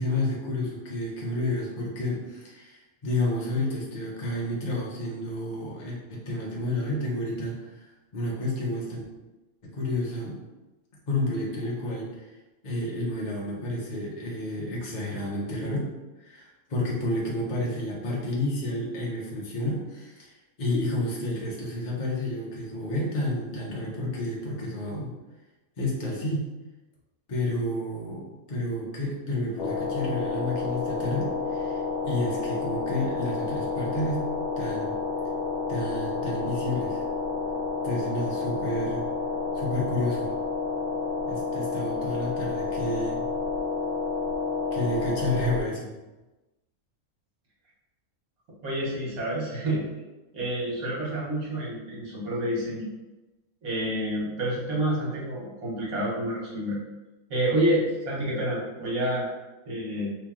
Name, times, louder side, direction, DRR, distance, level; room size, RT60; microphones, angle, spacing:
voice 1, 0.0-9.0 9.6-10.4 11.1-12.3 12.6-15.9 16.2-20.3 20.6-25.1 25.8-26.5 27.3-34.3 34.6-34.9 35.7-37.0 37.8-39.0 39.5-40.3 41.3-43.2 44.7-45.9, left 1 dB, 35° left, -3 dB, 0.9 m, -30 dB
sound 1, 29.6-45.6, left 4 dB, 85° left, 1.1 m, -30 dB
voice 2, 48.6-49.9 50.3-52.9 53.6-56.8 57.3-59.3 59.6-60.1, right 1 dB, 85° right, -5 dB, 1.5 m, -28 dB
3.3 x 2.8 x 3.6 m, 1.1 s
omnidirectional pair, 1.5 m